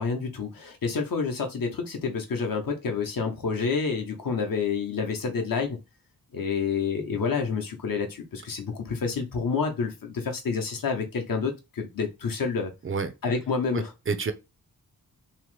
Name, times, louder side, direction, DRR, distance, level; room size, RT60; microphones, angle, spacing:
voice 1, 0.0-5.8 6.3-12.7 13.2-13.9, left 5 dB, 60° left, 0.8 m, -28 dB
voice 2, 13.7-14.3, right 5 dB, 35° right, 0.4 m, -29 dB
2.9 x 2.1 x 3.1 m
wide cardioid pair, 100°, 38 cm